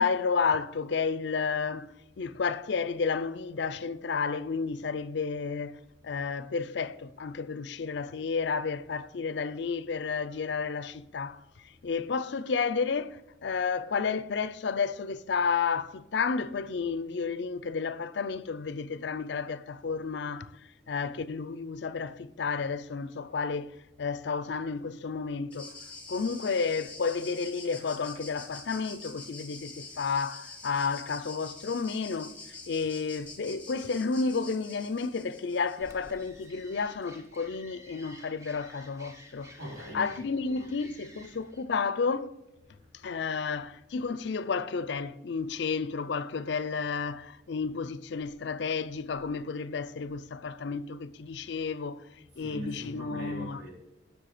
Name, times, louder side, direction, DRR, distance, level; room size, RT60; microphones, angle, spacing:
voice 1, 0.0-11.4 11.8-20.5 20.9-25.7 26.1-32.4 32.7-39.6 39.9-42.4 43.0-52.1 52.4-53.6, left 5 dB, 60° left, 0.4 m, -31 dB
sound 1, 25.5-36.4, left 3 dB, 5° left, 1.2 m, -46 dB
sound 2, 35.8-41.6, right 1 dB, 15° right, 0.8 m, -53 dB
voice 2, 39.6-40.7 52.3-53.7, equal, 80° right, 3.4 m, -41 dB
7.6 x 6.4 x 4.9 m
head